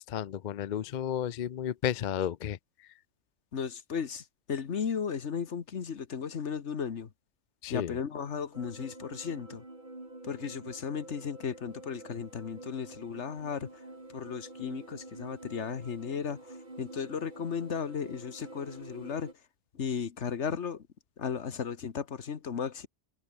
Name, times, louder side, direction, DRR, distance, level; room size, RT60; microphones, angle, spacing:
voice 1, 0.0-2.9 7.6-8.0, left 10 dB, 50° left, 0.6 m, -33 dB
voice 2, 3.5-7.1 7.7-9.6 10.2-13.8 14.1-19.3 19.7-20.9 21.2-22.9, left 6 dB, 75° left, 1.6 m, -35 dB
sound 1, 8.5-19.3, right 2 dB, 40° right, 3.8 m, -48 dB
omnidirectional pair, 1.2 m